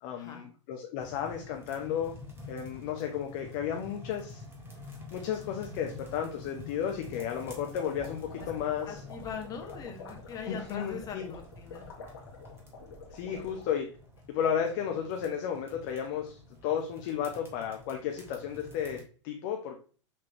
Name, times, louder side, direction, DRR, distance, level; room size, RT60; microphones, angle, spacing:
voice 1, 0.0-2.2 2.5-4.4 5.1-9.0 10.5-11.3 13.1-13.9 14.3-19.8, left 8 dB, 40° left, 3 dB, 0.6 m, -33 dB
sound 1, 1.0-19.0, left 3 dB, 15° right, 1.3 m, -48 dB
sound 2, 6.9-13.8, left 4 dB, 55° left, 1.4 m, -48 dB
voice 2, 8.6-11.8, left 6 dB, 25° left, 2 dB, 1.0 m, -41 dB
6.0 x 3.0 x 2.9 m, 0.40 s
figure-of-eight pair, 95°, 16 cm